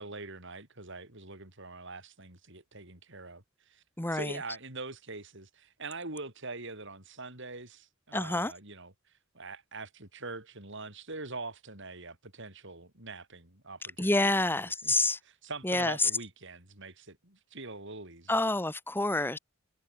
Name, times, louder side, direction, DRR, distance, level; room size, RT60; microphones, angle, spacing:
voice 1, 0.0-3.8 4.1-8.9 9.3-14.9 15.2-18.3, right 3 dB, 60° right, 7.6 m, -43 dB
voice 2, 4.0-4.4 8.1-8.5 14.0-15.2 15.6-16.1 18.3-19.4, left 2 dB, 10° left, 1.4 m, -28 dB
head